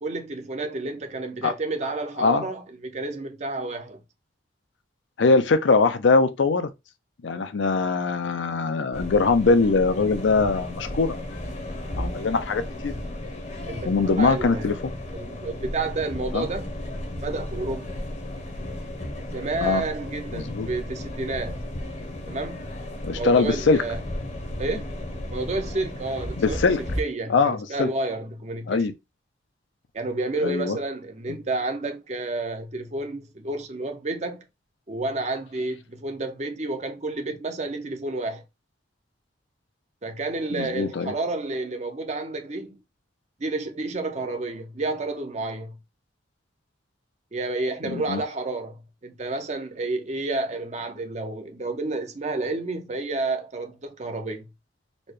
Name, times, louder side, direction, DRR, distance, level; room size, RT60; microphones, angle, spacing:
voice 1, 0.0-4.0 7.3-7.6 13.7-14.7 15.1-16.7 17.2-17.9 19.3-21.6 22.3-22.6 23.1-24.0 24.6-24.9 25.3-28.9 29.9-34.5 34.9-38.4 40.0-42.8 43.4-45.8 47.3-54.5, right 2 dB, 40° right, 0.6 m, -30 dB
voice 2, 5.2-6.7 7.2-11.2 12.0-12.9 13.9-14.7 16.3-16.5 19.6-19.8 20.3-20.7 23.0-23.8 26.4-26.8 27.3-27.9 28.7-28.9 30.4-30.8 40.5-41.1 47.8-48.2, left 4 dB, 80° left, 0.5 m, -22 dB
sound 1, 8.9-27.0, left 1 dB, 40° left, 0.7 m, -34 dB
4.1 x 2.2 x 3.1 m
head